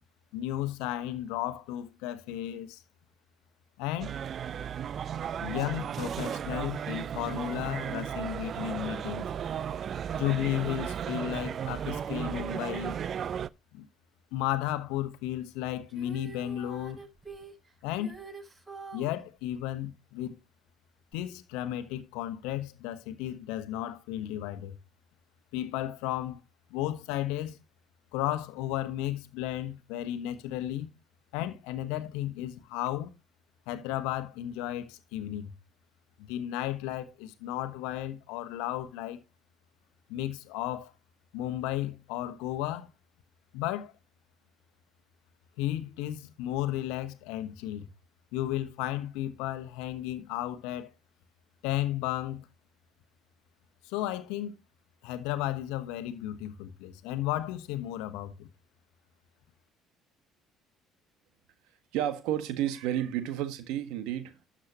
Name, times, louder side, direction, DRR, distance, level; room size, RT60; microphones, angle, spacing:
voice 1, 0.3-2.8 3.8-4.1 5.4-9.3 10.1-13.0 13.7-13.9 14.3-17.0 17.8-18.2 18.9-20.4 21.1-24.8 25.5-26.4 26.7-27.6 28.1-30.9 31.3-33.1 33.7-35.5 36.2-39.2 40.1-40.9 41.3-42.9 43.5-43.9 45.6-47.9 48.3-50.9 51.6-52.5 53.8-54.5 55.0-58.5, left 13 dB, 80° left, 1.1 m, -34 dB
sound 1, 4.0-13.5, right 8 dB, 50° right, 0.4 m, -35 dB
Female singing, 15.9-19.2 21.1-21.2, right 5 dB, 25° right, 6.8 m, -46 dB
voice 2, 61.9-64.4, right 11 dB, 75° right, 1.5 m, -31 dB
12.5 x 7.4 x 2.9 m
supercardioid pair, 70°, 0 cm